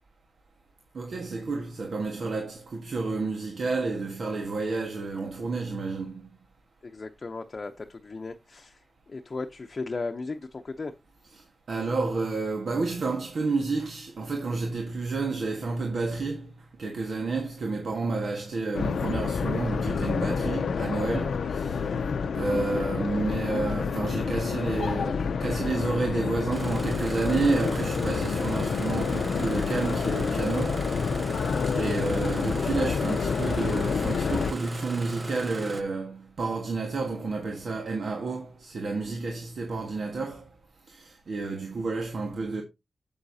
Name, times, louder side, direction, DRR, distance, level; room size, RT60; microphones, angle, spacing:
voice 1, 0.9-6.3 11.3-11.4 11.7-16.5 16.8-21.9 22.3-30.9 31.7-40.5 40.9-42.6, right 3 dB, 70° right, 1.4 m, -30 dB
voice 2, 6.8-10.9, left 3 dB, 45° left, 0.7 m, -36 dB
sound 1, 18.7-34.5, left 6 dB, 90° left, 0.5 m, -28 dB
Engine starting, 26.5-35.8, right 2 dB, 35° right, 1.0 m, -38 dB
8.0 x 7.9 x 2.8 m
wide cardioid pair, 85°, 0 cm